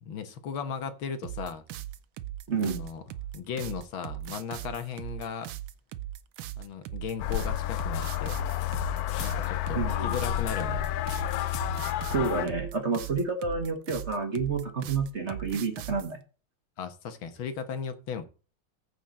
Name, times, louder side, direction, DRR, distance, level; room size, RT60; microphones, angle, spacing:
voice 1, 0.0-1.6 2.6-3.0 3.3-5.5 6.6-8.5 9.2-11.0 16.8-18.2, left 6 dB, 75° left, 1.9 m, -36 dB
sound 1, 1.2-16.1, right 13 dB, 85° right, 1.5 m, -39 dB
voice 2, 2.5-2.8 9.7-10.2 12.1-16.2, right 4 dB, 40° right, 1.4 m, -29 dB
sound 2, 7.2-12.5, left 13 dB, 90° left, 0.8 m, -30 dB
14.5 x 5.2 x 4.2 m
omnidirectional pair, 2.3 m